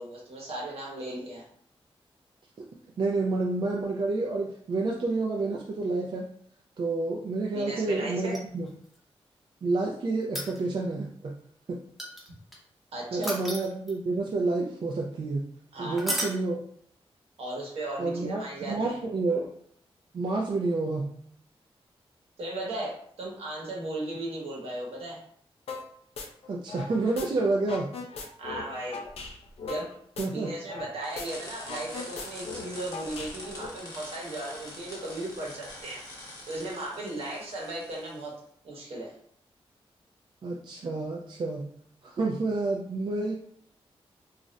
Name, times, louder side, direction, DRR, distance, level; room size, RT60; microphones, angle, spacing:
voice 1, 0.0-1.4 7.5-8.4 12.9-13.3 15.7-16.0 17.4-18.9 22.4-25.2 28.4-29.1 29.7-29.9 30.3-36.0 36.5-38.4 38.6-39.1, right 1 dB, 75° right, -2 dB, 0.9 m, -36 dB
voice 2, 3.0-6.3 6.8-8.7 9.6-11.3 11.7-11.8 13.1-15.4 15.8-16.6 18.0-19.5 20.1-21.1 26.5-27.9 30.2-30.5 40.4-41.7 42.0-43.3, right 3 dB, 50° right, -1 dB, 0.4 m, -29 dB
sound 1, 8.2-9.0 10.2-10.9 12.0-12.6 13.2-14.2 16.0-16.4 18.7-18.8, equal, ahead, 0.6 m, -33 dB
sound 2, 25.7-25.9 26.2-27.3 27.6-30.9 31.2-31.3 31.6-33.7, left 4 dB, 75° left, 0.4 m, -39 dB
sound 3, 31.0-38.3, left 1 dB, 35° left, 1.0 m, -44 dB
2.4 x 2.1 x 3.8 m, 0.62 s
wide cardioid pair, 160°, 10 cm